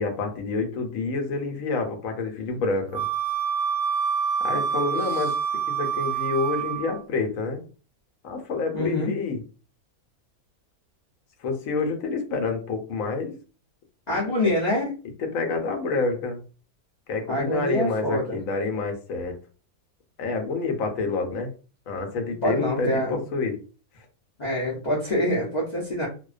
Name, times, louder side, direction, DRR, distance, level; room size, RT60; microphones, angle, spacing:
voice 1, 0.0-3.0 4.4-5.4 5.7-7.6 8.2-9.4 11.4-13.3 14.4-14.5 15.2-16.4 17.1-19.4 20.2-21.5 21.9-23.6, left 3 dB, 70° left, 4 dB, 1.0 m, -28 dB
Wind instrument woodwind instrument, 2.9-7.0, right 7 dB, 90° right, 1.1 m, -27 dB
voice 2, 8.7-9.1 14.1-14.9 17.3-18.4 22.4-23.2 24.4-26.1, left 1 dB, 50° left, -5 dB, 0.5 m, -25 dB
2.4 x 2.1 x 2.4 m, 0.36 s
omnidirectional pair, 1.5 m